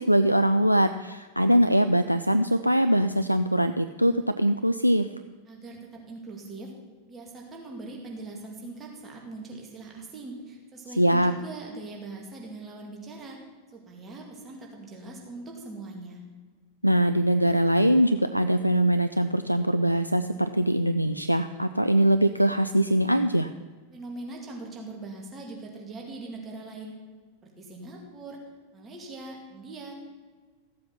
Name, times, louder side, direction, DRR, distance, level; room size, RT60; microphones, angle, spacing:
voice 1, 0.0-5.1 11.0-11.3 16.8-23.5, right 1 dB, 90° right, 9 dB, 0.3 m, -22 dB
voice 2, 5.5-6.7 7.1-13.4 13.7-16.2 23.9-26.9 27.4-28.4 28.7-29.9, right 2 dB, 20° right, 0 dB, 2.3 m, -41 dB
14.5 x 7.6 x 5.9 m, 1.4 s
figure-of-eight pair, 90°, 0 cm